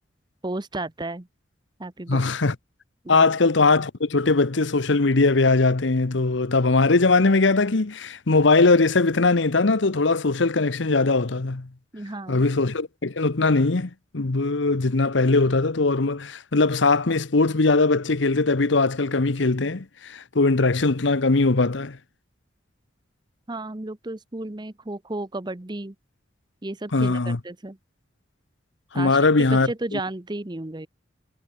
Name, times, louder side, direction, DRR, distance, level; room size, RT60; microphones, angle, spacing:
voice 1, 0.4-1.3 1.8-2.2 3.0-3.2 11.9-12.5 23.5-25.9 26.6-27.8 28.9-30.9, right 2 dB, 20° right, 0.9 m, -33 dB
voice 2, 2.1-2.6 3.1-11.7 12.3-22.0 26.9-27.4 28.9-30.0, left 3 dB, 70° left, 1.0 m, -20 dB
head